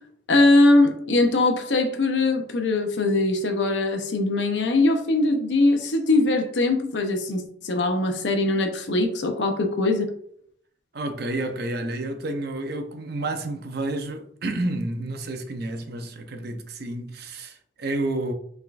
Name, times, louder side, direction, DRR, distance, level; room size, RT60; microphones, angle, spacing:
voice 1, 0.3-10.1, left 2 dB, 85° left, 0.8 m, -21 dB
voice 2, 10.9-18.3, right 2 dB, 60° right, 0.7 m, -30 dB
5.7 x 3.6 x 2.5 m
head